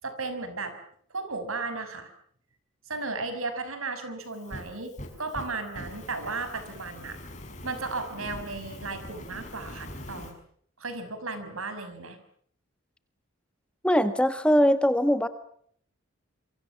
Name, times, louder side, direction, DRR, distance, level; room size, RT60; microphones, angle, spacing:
voice 1, 0.0-0.7 1.1-2.1 2.9-7.2 7.6-10.4 10.8-12.2, right 3 dB, 85° right, 10 dB, 6.2 m, -35 dB
Fire, 4.2-10.3, left 1 dB, 35° left, 6.0 m, -43 dB
voice 2, 13.8-15.3, equal, 5° left, 10 dB, 1.5 m, -21 dB
27.5 x 24.5 x 7.3 m, 0.62 s
head